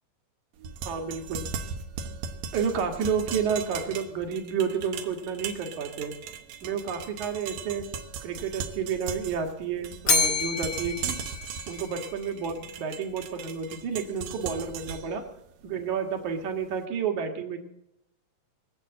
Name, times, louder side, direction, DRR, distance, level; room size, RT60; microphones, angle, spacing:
sound 1, 0.6-16.6, right 7 dB, 85° right, 2.9 m, -39 dB
voice 1, 0.8-1.4 2.5-6.1 6.6-7.9 8.2-11.2 11.7-15.2 15.6-17.6, right 6 dB, 65° right, 4 dB, 3.1 m, -30 dB
Bell, 10.1-12.3, left 4 dB, 35° left, 1.9 m, -28 dB
23.0 x 8.1 x 7.7 m, 0.80 s
omnidirectional pair, 3.7 m